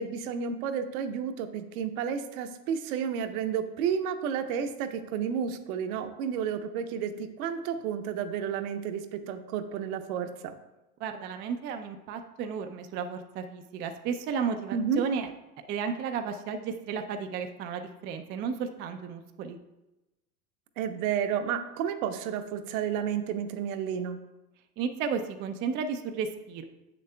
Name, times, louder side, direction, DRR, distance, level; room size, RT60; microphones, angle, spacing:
voice 1, 0.0-10.5 14.7-15.0 20.8-24.2, right 7 dB, 65° right, 8 dB, 0.8 m, -31 dB
voice 2, 11.0-15.3 15.7-19.6 24.8-26.6, right 6 dB, 25° right, 6 dB, 0.3 m, -33 dB
7.9 x 6.6 x 2.2 m, 0.98 s
hypercardioid pair, 100°, 46 cm